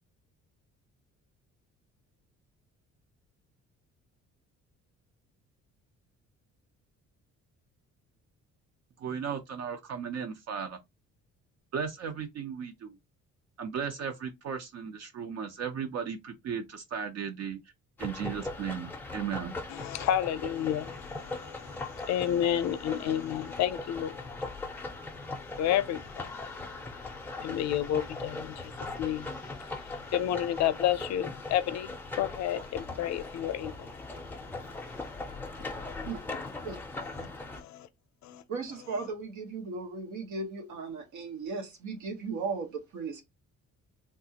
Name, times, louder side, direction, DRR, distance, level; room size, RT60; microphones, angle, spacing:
voice 1, 9.0-10.8 11.7-13.0 13.6-17.6 18.0-19.5, right 7 dB, 60° right, 0.6 m, -36 dB
sound 1, 18.0-37.6, left 2 dB, 5° left, 0.5 m, -40 dB
voice 2, 19.7-24.2 25.6-33.9 35.7-36.0 37.5-37.9 38.2-38.4, left 11 dB, 65° left, 0.5 m, -31 dB
voice 3, 38.5-43.2, right 4 dB, 85° right, 1.1 m, -36 dB
3.4 x 2.4 x 2.8 m
cardioid pair, 170°, 29 cm